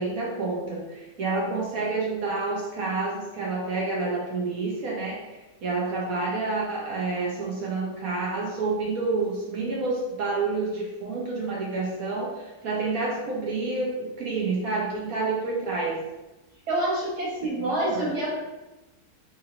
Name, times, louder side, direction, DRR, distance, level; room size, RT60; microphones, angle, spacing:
voice 1, 0.0-16.0 17.6-18.1, right 3 dB, 65° right, -3 dB, 1.5 m, -29 dB
voice 2, 16.7-18.4, right 1 dB, 85° right, -5 dB, 2.1 m, -27 dB
3.7 x 3.1 x 3.9 m, 1.0 s
omnidirectional pair, 1.6 m